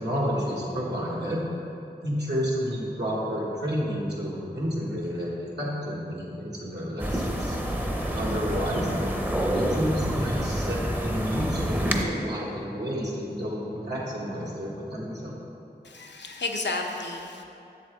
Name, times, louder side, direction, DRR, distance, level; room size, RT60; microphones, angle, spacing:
voice 1, 0.0-1.5 2.0-7.6 8.1-8.9 9.5-15.4, equal, 70° right, -6 dB, 1.6 m, -30 dB
sound 1, 7.0-12.1, equal, 10° right, 0.7 m, -27 dB
voice 2, 15.8-17.4, left 3 dB, 85° left, 2 dB, 0.7 m, -32 dB
7.5 x 7.4 x 3.5 m, 2.7 s
wide cardioid pair, 55°, 18 cm